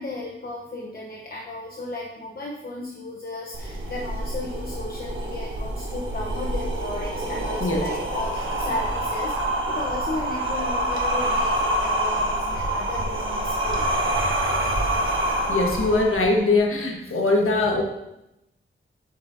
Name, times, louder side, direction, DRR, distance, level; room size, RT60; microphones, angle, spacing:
voice 1, 0.0-9.3 9.7-13.8, left 2 dB, 45° left, -2 dB, 1.0 m, -34 dB
sound 1, 3.5-16.5, right 1 dB, 70° right, 1.4 m, -26 dB
voice 2, 15.5-17.8, left 2 dB, 90° left, 1 dB, 1.4 m, -21 dB
8.3 x 8.0 x 2.8 m, 0.88 s
wide cardioid pair, 105°, 21 cm